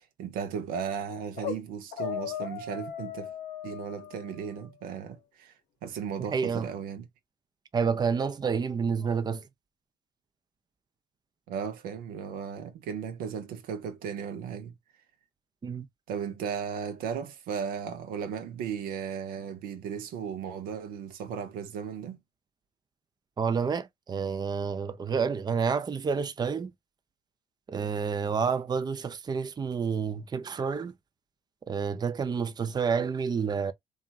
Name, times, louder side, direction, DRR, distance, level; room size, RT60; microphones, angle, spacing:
voice 1, 0.0-3.3 3.6-5.5 5.8-7.1 11.5-14.8 16.1-22.2, right 7 dB, 80° right, 0.6 m, -36 dB
sound 1, 1.1-1.6 1.9-4.7, left 9 dB, 80° left, 0.7 m, -37 dB
voice 2, 6.3-6.7 7.7-9.5 15.6-15.9 23.4-26.7 27.7-30.9 31.7-33.7, right 6 dB, 30° right, 0.5 m, -29 dB
2.8 x 2.4 x 2.3 m
hypercardioid pair, 55°, 15 cm